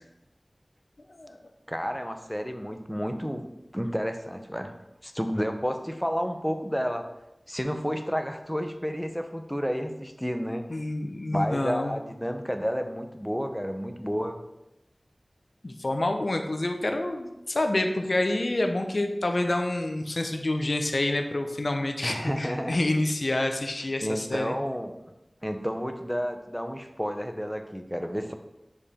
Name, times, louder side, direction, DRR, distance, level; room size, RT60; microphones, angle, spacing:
voice 1, 1.7-3.4 3.7-4.7 5.0-7.1 7.5-10.6 11.3-14.4 22.0-22.8 24.0-25.0 25.4-28.3, equal, 5° left, 6 dB, 0.7 m, -31 dB
voice 2, 10.7-12.0 15.6-24.6, left 1 dB, 70° left, 5 dB, 0.6 m, -28 dB
5.1 x 4.9 x 4.2 m, 0.94 s
wide cardioid pair, 45°, 0 cm